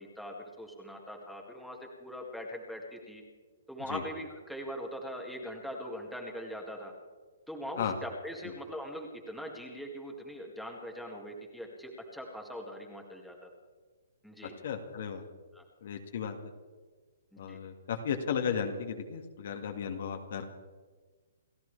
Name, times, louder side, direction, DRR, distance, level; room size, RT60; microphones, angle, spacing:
voice 1, 0.0-3.2 3.7-6.9 7.5-13.5 14.2-14.5 15.5-15.6 17.3-17.6, equal, ahead, -1 dB, 2.0 m, -41 dB
voice 2, 14.6-15.2 15.8-16.4 17.4-20.4, left 7 dB, 55° left, 4 dB, 2.0 m, -34 dB
29.5 x 13.5 x 3.4 m, 1.4 s
hypercardioid pair, 150°, 0 cm